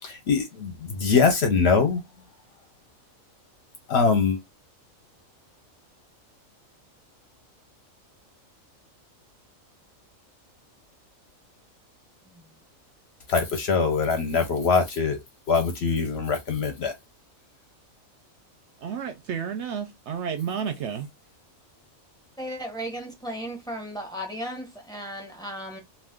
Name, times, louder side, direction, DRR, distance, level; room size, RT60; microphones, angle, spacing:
voice 1, 0.0-2.0 3.9-4.4 13.3-15.2 15.5-16.9, left 5 dB, 60° left, 0.8 m, -23 dB
voice 2, 18.8-21.1, right 7 dB, 65° right, 0.8 m, -31 dB
voice 3, 22.4-25.8, equal, 5° left, 0.6 m, -35 dB
2.4 x 2.3 x 3.5 m
omnidirectional pair, 1.4 m